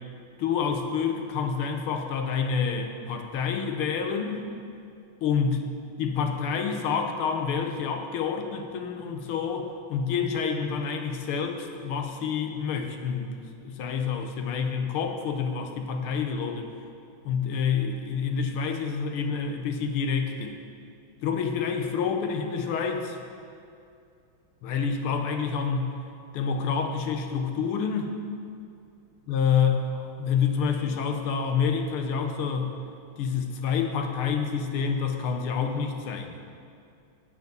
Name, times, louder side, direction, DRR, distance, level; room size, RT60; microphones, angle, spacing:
voice 1, 0.4-4.5 5.2-5.6 6.0-16.7 17.3-20.6 21.2-23.2 24.6-25.9 26.3-28.2 29.3-32.7 33.2-36.4, left 6 dB, 85° left, 5 dB, 1.8 m, -28 dB
9.2 x 8.0 x 6.9 m, 2.4 s
omnidirectional pair, 2.4 m